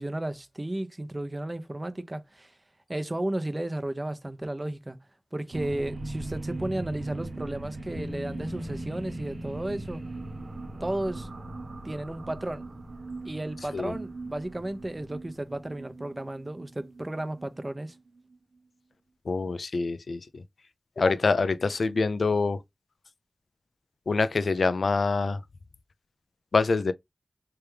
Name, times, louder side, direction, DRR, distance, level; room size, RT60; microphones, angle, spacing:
voice 1, 0.0-2.5 2.9-5.0 5.3-10.0 10.8-11.3 11.8-12.7 13.2-17.9, right 1 dB, 30° right, 0.7 m, -33 dB
sound 1, 5.5-18.4, right 2 dB, 70° right, 0.8 m, -40 dB
sound 2, 7.9-16.9, left 1 dB, 40° left, 1.0 m, -46 dB
voice 2, 19.3-20.4 21.0-22.6 24.1-25.4 26.5-26.9, left 4 dB, 85° left, 0.4 m, -25 dB
3.4 x 3.4 x 3.1 m
wide cardioid pair, 60°, 0 cm